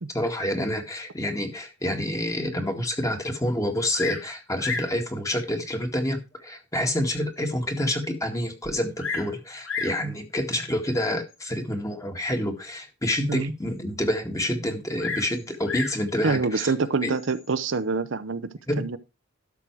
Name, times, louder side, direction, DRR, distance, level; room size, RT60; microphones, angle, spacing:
voice 1, 0.1-16.7 17.0-17.1 18.7-18.8, left 1 dB, 15° left, 1.9 m, -28 dB
Bird vocalization bird call bird song, 3.9-4.3 4.6-5.0 5.8-5.9 6.6-6.7 7.2-7.3 7.5-7.6 8.6-9.3 9.6-10.0 11.0-11.3 15.0-16.0 17.1-17.5, left 5 dB, 65° left, 2.8 m, -32 dB
voice 2, 16.2-19.0, right 4 dB, 65° right, 0.7 m, -26 dB
12.5 x 6.2 x 4.6 m
head